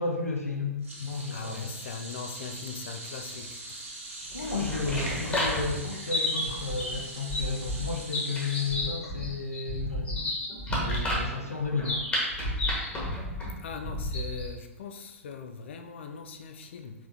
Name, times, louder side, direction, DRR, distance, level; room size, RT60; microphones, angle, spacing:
voice 1, 0.0-1.7 4.3-10.4 10.8-12.1, left 4 dB, 80° left, 0.8 m, -33 dB
sound 1, 0.8-9.3 9.6-9.9 11.1-11.2, right 2 dB, 65° right, 1.4 m, -43 dB
voice 2, 1.3-3.6 13.6-16.9, left 5 dB, 55° left, 0.5 m, -40 dB
sound 2, 4.1-6.4, right 2 dB, 15° right, 0.9 m, -45 dB
sound 3, 4.3-14.5, left 1 dB, 15° left, 1.3 m, -31 dB
5.0 x 3.6 x 2.6 m
figure-of-eight pair, 105°, 8 cm